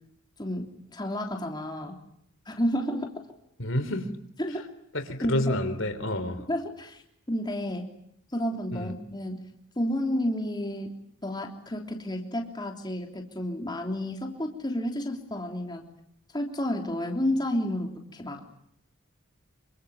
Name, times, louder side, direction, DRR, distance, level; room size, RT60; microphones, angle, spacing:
voice 1, 0.4-1.9 2.4-3.1 4.4-4.6 5.2-5.6 6.5-7.0 7.3-7.8 8.3-9.5 9.7-15.9 16.3-18.4, left 1 dB, 20° left, 2 dB, 3.4 m, -31 dB
voice 2, 3.6-4.1 4.9-6.5 8.7-8.9, left 1 dB, 65° left, 9 dB, 3.5 m, -29 dB
28.0 x 25.5 x 7.2 m, 0.73 s
head